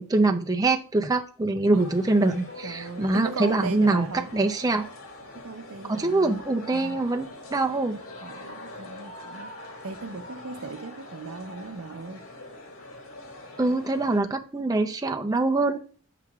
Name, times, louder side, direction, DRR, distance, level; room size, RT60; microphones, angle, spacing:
voice 1, 0.0-4.9 5.9-8.0 13.6-15.8, right 2 dB, 15° right, 0.5 m, -24 dB
sound 1, 1.8-14.2, left 2 dB, 70° left, 2.1 m, -43 dB
voice 2, 2.6-4.3 5.3-6.4 6.7-7.0 8.2-9.5 9.8-12.2, right 3 dB, 80° right, 0.7 m, -37 dB
9.6 x 5.8 x 2.4 m
head